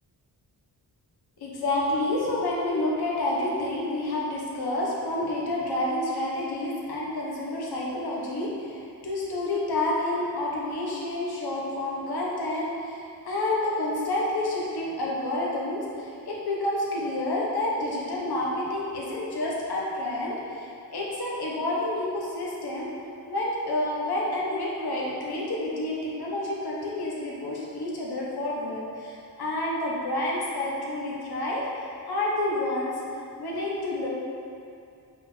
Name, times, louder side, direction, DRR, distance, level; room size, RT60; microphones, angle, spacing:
voice 1, 1.4-22.9 23.3-31.7 32.1-32.9 33.4-34.1, left 1 dB, 80° left, -4 dB, 1.4 m, -29 dB
5.4 x 3.7 x 5.6 m, 2.5 s
wide cardioid pair, 145°, 38 cm